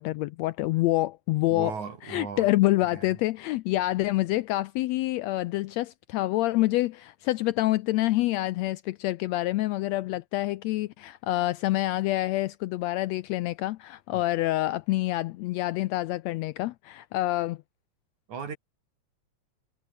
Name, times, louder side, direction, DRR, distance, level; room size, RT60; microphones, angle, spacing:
voice 1, 0.0-1.7 2.0-17.6, left 17 dB, 80° left, 1.6 m, -27 dB
voice 2, 1.5-2.5 2.9-3.2 14.1-14.2 18.3-18.6, right 6 dB, 75° right, 4.6 m, -37 dB
omnidirectional pair, 3.5 m